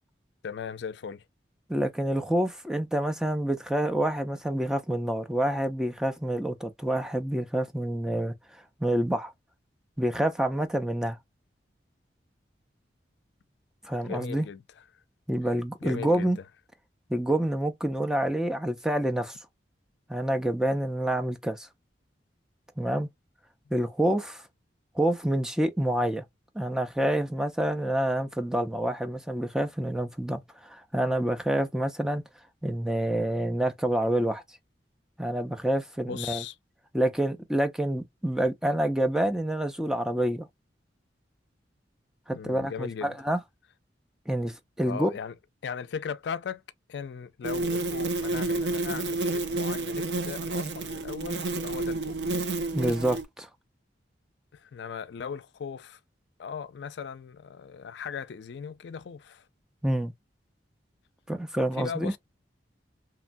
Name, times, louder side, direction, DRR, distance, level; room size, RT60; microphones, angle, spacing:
voice 1, 0.4-1.2 14.0-15.0 15.8-16.5 36.1-36.6 42.3-43.1 44.8-45.4 45.6-46.6 46.9-52.4 54.5-56.0 56.4-59.5 61.7-62.2, left 6 dB, 70° left, 0.4 m, -38 dB
voice 2, 1.7-8.3 8.8-9.3 10.0-11.2 13.8-14.5 15.3-16.4 17.1-19.4 20.1-21.7 22.8-23.1 23.7-24.4 25.0-26.2 26.6-32.2 32.6-34.4 35.2-36.4 36.9-40.5 42.3-43.4 44.3-45.1 52.7-53.5 59.8-60.1 61.3-62.1, right 1 dB, 5° right, 0.4 m, -27 dB
sound 1, 47.4-53.2, right 2 dB, 70° right, 0.6 m, -30 dB
2.9 x 2.1 x 2.5 m
head